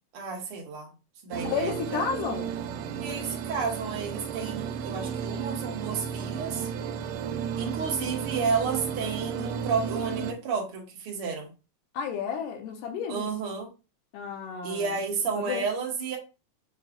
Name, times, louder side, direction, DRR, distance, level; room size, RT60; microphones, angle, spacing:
voice 1, 0.1-0.9 1.2-2.0 3.0-6.7 7.6-11.5 13.1-13.7 14.6-16.2, right 5 dB, 55° right, 1.6 m, -31 dB
sound 1, 1.3-10.3, right 7 dB, 90° right, 2.3 m, -33 dB
voice 2, 1.4-2.5 11.9-13.3 14.1-15.0 15.4-15.7, left 6 dB, 80° left, 2.4 m, -32 dB
6.7 x 3.1 x 2.4 m
omnidirectional pair, 3.8 m